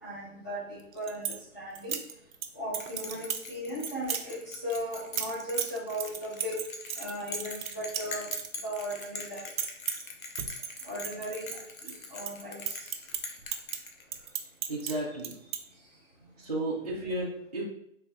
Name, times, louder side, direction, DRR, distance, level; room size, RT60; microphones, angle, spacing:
voice 1, 0.0-2.0 2.5-6.6 7.0-8.3 8.6-9.5 10.8-12.9, equal, 15° left, -10 dB, 0.7 m, -37 dB
sound 1, 0.8-1.4 1.8-2.5 2.7-3.5 3.8-4.2 4.7-9.0 9.3-10.1 10.4-11.9 12.2-14.9 15.2-15.6, right 8 dB, 85° right, 0.6 m, -35 dB
Bell, 2.7-14.4, left 4 dB, 80° left, 0.8 m, -43 dB
voice 2, 14.7-15.4 16.4-17.6, right 1 dB, 30° right, -6 dB, 0.5 m, -33 dB
4.3 x 3.0 x 2.3 m, 0.73 s
hypercardioid pair, 170°, 40 cm